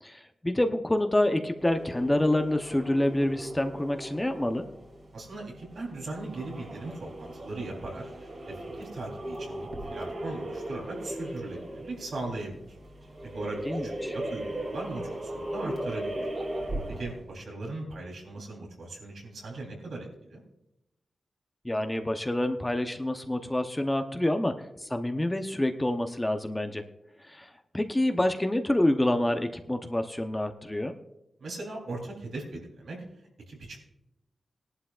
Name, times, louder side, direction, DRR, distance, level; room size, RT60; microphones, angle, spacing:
voice 1, 0.0-4.7 13.6-14.1 21.6-26.8 27.2-30.9, left 1 dB, 15° left, 6 dB, 0.8 m, -27 dB
sound 1, 1.6-17.3, right 1 dB, 55° right, 2.8 m, -38 dB
voice 2, 5.1-12.8 13.3-16.1 16.9-20.4 31.4-33.0 33.5-33.8, right 2 dB, 80° right, -1 dB, 3.6 m, -39 dB
18.0 x 11.5 x 2.5 m, 0.89 s
cardioid pair, 70°, 0 cm